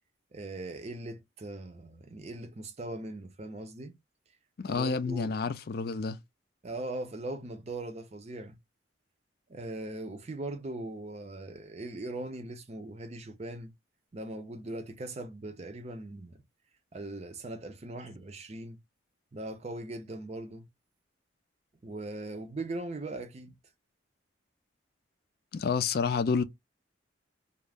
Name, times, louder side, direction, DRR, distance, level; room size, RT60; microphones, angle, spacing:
voice 1, 0.3-4.0 4.7-5.4 6.6-8.6 9.5-13.7 14.1-16.4 16.9-18.8 19.3-20.7 21.8-23.6, right 2 dB, 35° right, 0.5 m, -40 dB
voice 2, 4.6-6.2 25.5-26.4, left 5 dB, 50° left, 0.4 m, -29 dB
2.4 x 2.0 x 3.3 m
head